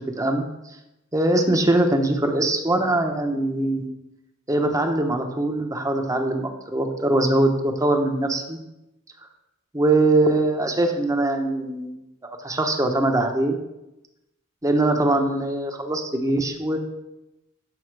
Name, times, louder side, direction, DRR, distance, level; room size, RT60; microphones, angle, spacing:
voice 1, 1.1-3.9 4.5-8.6 9.7-13.6 14.6-16.8, right 2 dB, 15° right, 4 dB, 1.0 m, -22 dB
8.7 x 7.0 x 4.8 m, 0.94 s
head